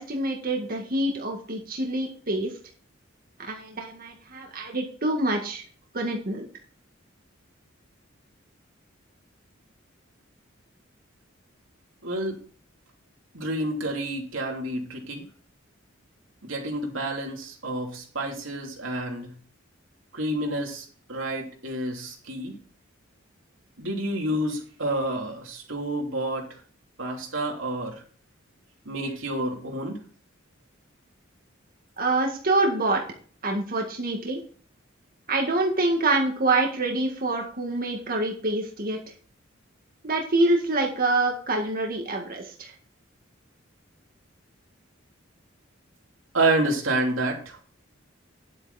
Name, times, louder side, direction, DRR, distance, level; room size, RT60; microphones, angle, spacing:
voice 1, 0.0-2.5 3.4-5.6 5.9-6.5 32.0-33.0 33.4-34.4 35.3-39.0 40.0-42.7, right 2 dB, 45° right, 1 dB, 1.9 m, -26 dB
voice 2, 12.0-12.4 13.3-15.2 16.4-19.3 20.1-22.5 23.8-26.6 27.0-28.0 28.8-30.0 46.3-47.6, right 1 dB, 80° right, 1 dB, 3.2 m, -29 dB
10.5 x 8.1 x 4.2 m, 0.43 s
head